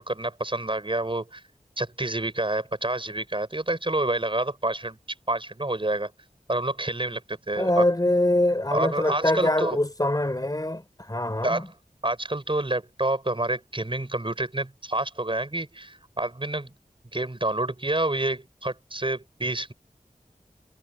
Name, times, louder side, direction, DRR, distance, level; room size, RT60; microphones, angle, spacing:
voice 1, 0.0-1.4 1.8-5.0 5.3-6.1 6.5-7.8 8.7-9.8 11.4-11.7 12.0-16.7 17.1-19.7, right 2 dB, 35° right, 6.7 m, -28 dB
voice 2, 7.6-10.8 11.1-11.7, left 1 dB, 25° left, 4.0 m, -24 dB
wide cardioid pair, 60°, 15 cm